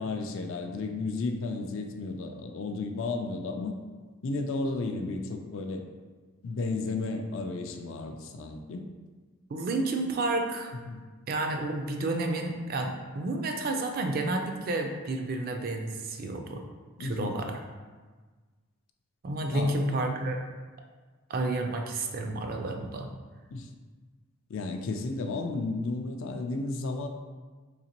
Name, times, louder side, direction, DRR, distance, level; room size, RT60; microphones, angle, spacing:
voice 1, 0.0-3.8 4.2-5.8 6.4-8.9 10.9-11.0 17.0-17.4 19.5-19.7 23.5-23.7 24.5-27.1, left 3 dB, 60° left, 5 dB, 0.3 m, -33 dB
voice 2, 9.5-10.7 11.3-16.6 17.0-17.6 19.2-20.4 21.3-23.1, right 2 dB, 40° right, 3 dB, 0.3 m, -30 dB
3.9 x 2.8 x 2.8 m, 1.4 s
head